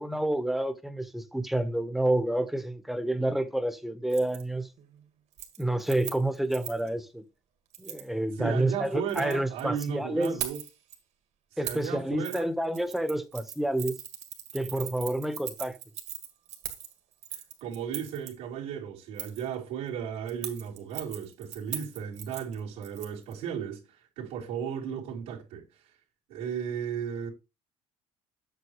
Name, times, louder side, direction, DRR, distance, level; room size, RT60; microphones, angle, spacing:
voice 1, 0.0-4.7 5.6-7.2 7.8-10.3 11.6-13.9 14.5-15.8, right 1 dB, ahead, 1.1 m, -29 dB
Keys jangling, 4.1-4.4 4.8-5.0 5.3-6.9 7.7-8.1 8.9-9.9 10.2-11.0 11.6-11.9 12.2-12.4 12.7-18.3 19.2-19.5 20.3-23.3 23.6-23.7, right 10 dB, 65° right, 1.9 m, -40 dB
voice 2, 8.4-10.6 11.5-12.5 17.3-25.9 26.3-27.3, right 8 dB, 85° right, 2.7 m, -35 dB
8.1 x 6.7 x 3.2 m
supercardioid pair, 85°, 13 cm